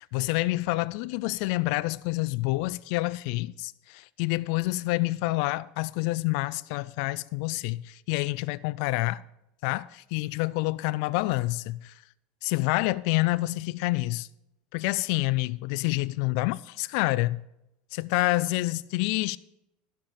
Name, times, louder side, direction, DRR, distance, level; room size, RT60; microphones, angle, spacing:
voice 1, 0.0-9.2 9.6-12.0 12.4-14.3 14.7-17.4 17.9-19.4, left 20 dB, 60° left, 0.3 m, -28 dB
14.5 x 5.8 x 6.4 m
supercardioid pair, 155°, 4 cm